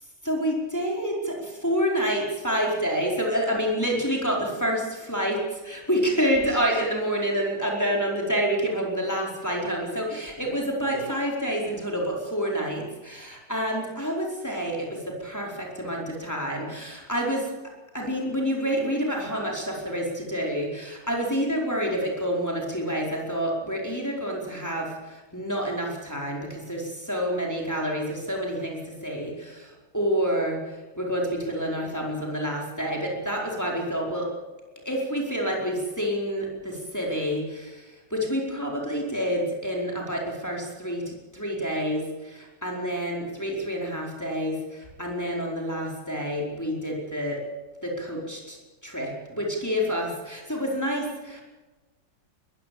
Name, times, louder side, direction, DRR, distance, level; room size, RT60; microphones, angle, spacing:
voice 1, 0.2-17.5 17.9-30.6 31.0-34.3 34.8-47.4 47.8-48.6 48.8-51.4, equal, 10° left, -2 dB, 4.7 m, -28 dB
21.0 x 16.0 x 8.6 m, 1.2 s
omnidirectional pair, 2.0 m